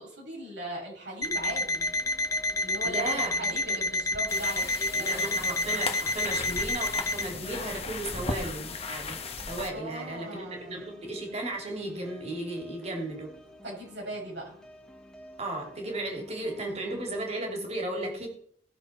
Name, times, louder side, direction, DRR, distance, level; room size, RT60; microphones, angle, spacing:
voice 1, 0.0-1.8 2.6-5.6 7.3-7.5 9.7-10.8 13.6-14.6, right 1 dB, 90° right, -3 dB, 6.7 m, -39 dB
Alarm, 1.2-7.3, left 2 dB, 20° left, 0.6 m, -29 dB
sound 1, 1.6-17.1, equal, 5° left, 1.9 m, -52 dB
voice 2, 2.8-3.3 5.0-9.2 9.5-13.3 15.4-18.3, right 2 dB, 40° right, 1 dB, 3.2 m, -35 dB
sound 2, 4.3-9.7, left 4 dB, 35° left, 1.2 m, -36 dB
19.0 x 6.9 x 4.5 m, 0.63 s
head